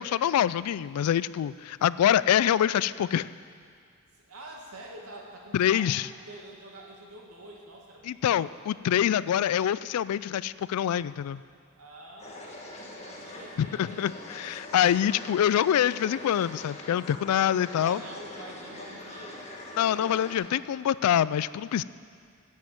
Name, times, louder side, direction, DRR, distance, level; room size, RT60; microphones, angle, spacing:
voice 1, 0.0-3.3 5.5-6.1 8.0-11.4 13.6-18.0 19.8-21.8, left 10 dB, 90° left, 17 dB, 0.3 m, -25 dB
voice 2, 4.1-5.9 6.3-8.5 11.8-14.0 17.4-19.5, right 1 dB, 90° right, -1 dB, 2.0 m, -47 dB
sound 1, 12.2-20.4, left 1 dB, 30° left, 1.3 m, -43 dB
10.5 x 7.4 x 7.7 m, 2.2 s
head